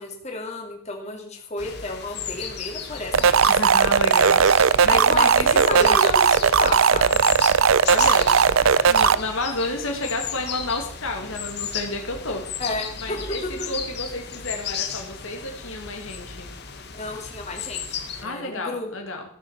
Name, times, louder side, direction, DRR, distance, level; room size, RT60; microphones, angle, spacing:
voice 1, 0.0-3.7 4.9-7.2 12.6-13.5 16.9-18.9, left 2 dB, 30° left, 1 dB, 2.6 m, -32 dB
sound 1, 1.6-18.2, left 7 dB, 50° left, 1.6 m, -35 dB
sound 2, 3.1-9.1, right 6 dB, 70° right, 0.6 m, -17 dB
voice 2, 3.5-4.4 4.8-6.0 7.9-8.3 8.7-12.4 13.0-16.5 18.2-19.2, left 2 dB, 65° left, 3 dB, 1.9 m, -30 dB
14.0 x 7.3 x 7.1 m, 0.63 s
head